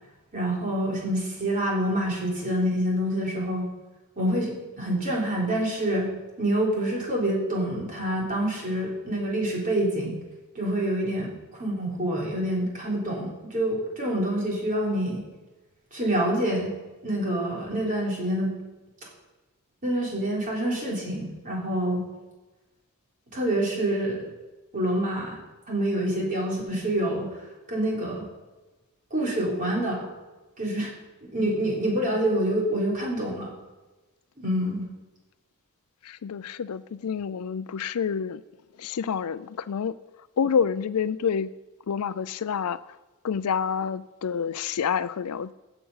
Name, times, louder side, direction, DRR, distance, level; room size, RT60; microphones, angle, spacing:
voice 1, 0.3-3.7 4.2-6.1 6.4-10.2 10.5-15.2 15.9-16.7 17.0-18.5 19.8-22.1 23.3-24.3 24.7-25.4 25.7-27.4 27.7-28.3 29.1-30.1 30.6-30.9 31.3-33.5 34.4-34.9, right 1 dB, 40° right, -3 dB, 3.8 m, -27 dB
voice 2, 36.2-38.4 38.8-39.9 40.4-41.5 41.9-42.8 43.2-45.5, left 7 dB, 75° left, 16 dB, 0.4 m, -28 dB
15.5 x 7.1 x 5.6 m, 1.2 s
head